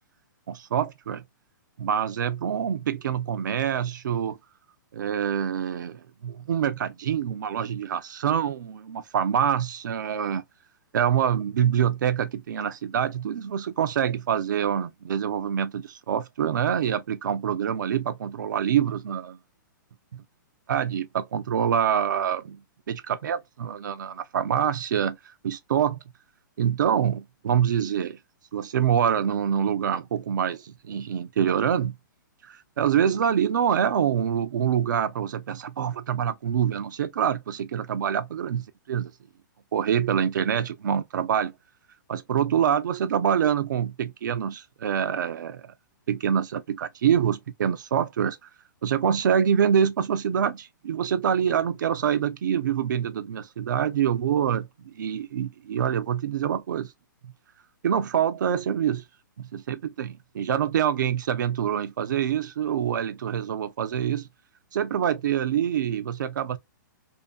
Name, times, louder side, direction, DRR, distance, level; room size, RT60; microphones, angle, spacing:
voice 1, 0.5-1.2 1.8-4.4 4.9-10.4 10.9-19.4 20.1-20.2 20.7-22.6 22.9-25.2 25.4-26.0 26.6-28.2 28.5-32.0 32.4-39.1 39.7-41.5 42.1-45.7 46.1-48.4 48.8-56.9 57.2-57.3 57.8-59.0 59.4-64.3 64.7-66.6, right 8 dB, 65° right, 0.5 m, -25 dB
2.7 x 2.6 x 2.2 m
hypercardioid pair, 170°, 11 cm